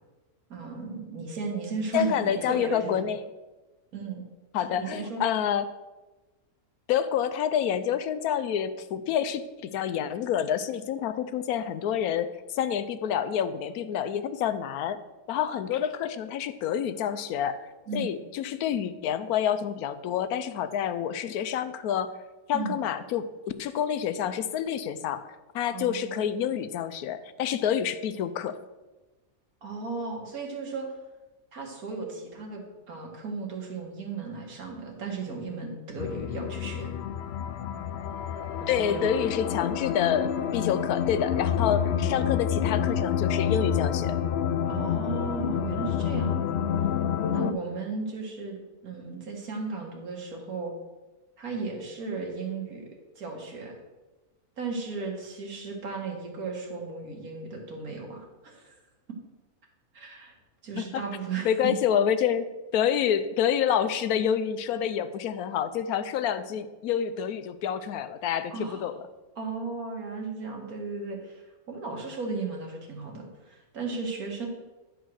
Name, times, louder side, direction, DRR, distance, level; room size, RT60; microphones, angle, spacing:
voice 1, 0.5-3.0 3.9-4.2 4.7-5.2 17.9-18.1 22.5-22.8 25.7-26.2 29.6-30.9 31.5-36.9 38.6-39.1 41.8-42.1 44.7-46.4 47.3-50.7 51.4-52.9 53.2-53.7 54.6-58.8 59.9-60.3 60.6-61.7 68.5-68.9 69.4-71.4 71.7-74.5, right 4 dB, 75° right, 1 dB, 2.1 m, -35 dB
voice 2, 1.9-3.2 4.5-5.6 6.9-15.0 15.3-17.6 17.9-22.2 22.5-23.3 23.6-28.6 38.7-44.2 60.8-61.0 61.4-68.9, left 9 dB, 90° left, 12 dB, 1.1 m, -28 dB
sound 1, 36.0-47.5, left 8 dB, 65° left, 0.6 m, -28 dB
10.0 x 4.6 x 6.3 m, 1.1 s
omnidirectional pair, 1.5 m